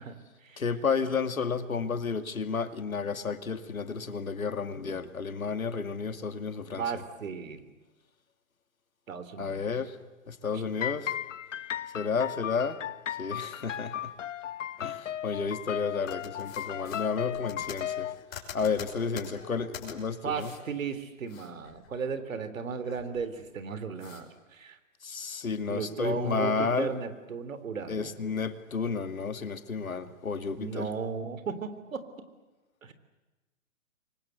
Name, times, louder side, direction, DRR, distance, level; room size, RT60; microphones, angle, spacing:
voice 1, 0.0-0.6 6.8-7.7 9.1-9.7 20.2-24.8 25.7-28.1 30.6-32.1 32.8-32.9, right 5 dB, 70° right, 3.6 m, -35 dB
voice 2, 0.6-6.9 9.4-10.0 10.3-11.2 11.9-12.8 13.1-14.1 14.8-18.1 18.5-20.5 25.0-27.0 27.9-30.9, left 5 dB, 85° left, 2.3 m, -32 dB
sound 1, 10.8-18.2, left 10 dB, 60° left, 0.9 m, -36 dB
sound 2, 16.1-19.9 20.4-20.6 21.0-22.4 22.7-23.5 24.0-24.2, left 8 dB, 45° left, 6.2 m, -46 dB
28.5 x 24.0 x 8.0 m
hypercardioid pair, 135°, 41 cm